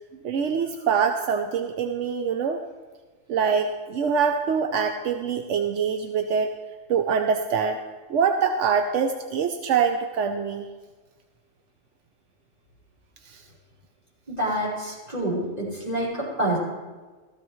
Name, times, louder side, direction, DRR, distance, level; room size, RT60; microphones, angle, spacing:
voice 1, 0.2-2.6 3.3-6.5 6.9-7.8 8.1-10.7 13.3-13.4, right 6 dB, 80° right, 5 dB, 1.0 m, -24 dB
voice 2, 14.3-16.1 16.4-16.6, right 1 dB, 35° right, -7 dB, 5.2 m, -27 dB
15.5 x 14.5 x 3.1 m, 1.4 s
omnidirectional pair, 1.2 m